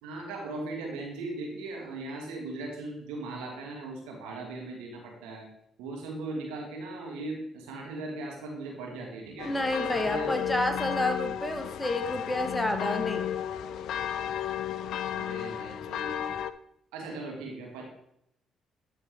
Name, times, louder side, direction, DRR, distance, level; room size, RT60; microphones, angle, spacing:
voice 1, 0.0-5.5 5.8-9.5 9.9-10.4 10.6-10.9 12.6-12.9 15.1-16.4 16.9-17.8, right 2 dB, 80° right, 0 dB, 1.6 m, -38 dB
sound 1, 9.4-16.5, left 10 dB, 70° left, 0.3 m, -33 dB
voice 2, 9.4-13.2, left 1 dB, 15° left, 5 dB, 1.3 m, -29 dB
11.5 x 4.1 x 3.5 m, 0.73 s
hypercardioid pair, 50°, 0 cm